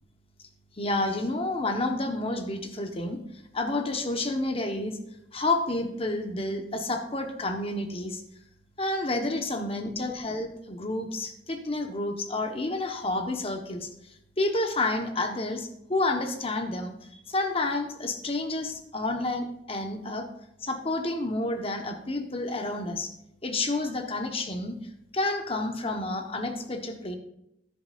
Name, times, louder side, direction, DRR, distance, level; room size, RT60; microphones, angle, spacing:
voice 1, 0.8-3.2 3.5-5.0 5.3-8.2 8.8-13.9 14.4-16.9 17.3-20.3 20.6-23.1 23.4-24.8 25.1-27.2, left 2 dB, 35° left, 5 dB, 1.2 m, -29 dB
13.5 x 10.0 x 2.6 m, 0.81 s
head